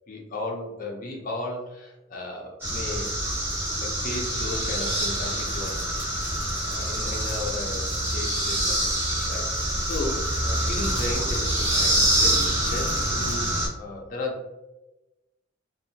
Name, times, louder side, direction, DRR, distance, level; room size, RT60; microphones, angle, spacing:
voice 1, 0.1-3.2 3.8-6.4 6.7-8.8 9.2-13.5 13.8-14.4, left 2 dB, 45° left, 0 dB, 0.6 m, -35 dB
sound 1, 2.6-13.7, right 1 dB, 10° right, 0.9 m, -26 dB
2.6 x 2.2 x 2.7 m, 1.0 s
head